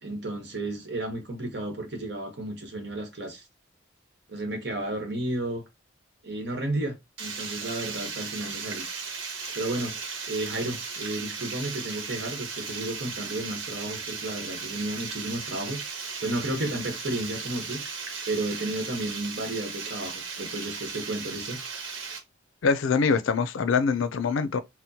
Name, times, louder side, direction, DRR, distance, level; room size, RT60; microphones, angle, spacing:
voice 1, 0.0-3.4 4.3-5.6 6.2-8.8 9.5-9.9 10.3-17.8 18.3-21.6, right 1 dB, 55° right, 1.1 m, -32 dB
Water, 7.2-22.2, right 5 dB, 85° right, 1.0 m, -36 dB
voice 2, 22.6-24.6, left 5 dB, 85° left, 0.4 m, -24 dB
4.3 x 2.1 x 2.7 m
head